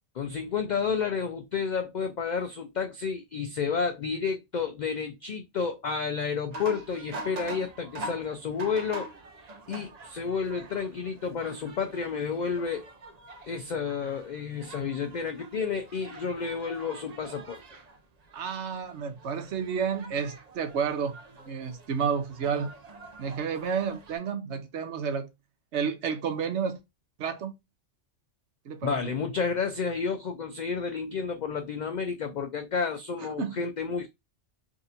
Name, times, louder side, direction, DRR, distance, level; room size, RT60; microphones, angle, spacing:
voice 1, 0.2-9.1 9.7-12.9 13.5-17.6 28.8-34.1, left 5 dB, 65° left, 0.4 m, -31 dB
sound 1, 6.5-24.2, right 2 dB, 45° right, 0.6 m, -45 dB
voice 2, 18.3-21.2 21.4-22.7 23.2-25.3 25.7-26.8 27.2-27.5 28.6-29.0 33.2-33.6, right 6 dB, 70° right, 1.0 m, -30 dB
3.7 x 2.5 x 2.7 m
omnidirectional pair, 1.2 m